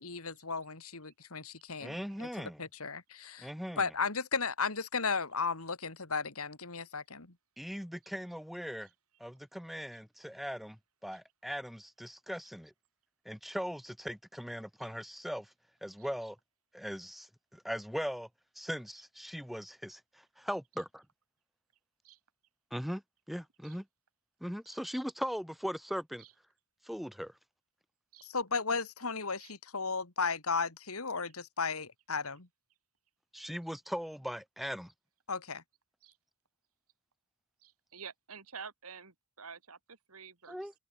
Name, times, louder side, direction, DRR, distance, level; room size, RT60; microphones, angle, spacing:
voice 1, 0.0-3.5 3.8-7.3 28.2-32.5 35.3-35.6, left 4 dB, 85° left, 3.0 m, -35 dB
voice 2, 1.8-2.6 3.4-3.8 7.6-8.9 9.2-10.7 11.0-12.7 13.3-15.4 15.8-16.3 16.7-17.2 17.6-18.3 18.6-20.0 20.5-20.9 22.7-23.0 23.3-23.8 24.4-26.2 26.9-27.3 33.3-34.9 40.5-40.7, equal, ahead, 1.1 m, -39 dB
voice 3, 37.6-40.7, right 6 dB, 85° right, 2.5 m, -50 dB
head